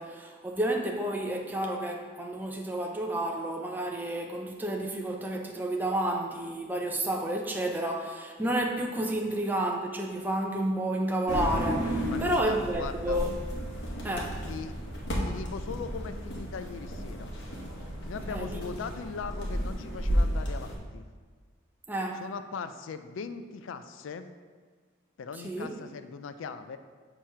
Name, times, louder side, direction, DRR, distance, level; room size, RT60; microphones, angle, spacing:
voice 1, 0.0-13.3 14.0-14.4 18.3-18.6 21.9-22.2 25.4-25.7, right 1 dB, 10° right, 1 dB, 0.4 m, -30 dB
sound 1, 11.3-20.8, equal, 60° left, 1.1 m, -33 dB
voice 2, 12.0-13.2 14.5-14.7 15.2-17.4 18.1-21.1 22.2-24.3 25.2-26.8, left 5 dB, 75° left, 10 dB, 0.4 m, -39 dB
6.5 x 3.0 x 5.5 m, 1.5 s
head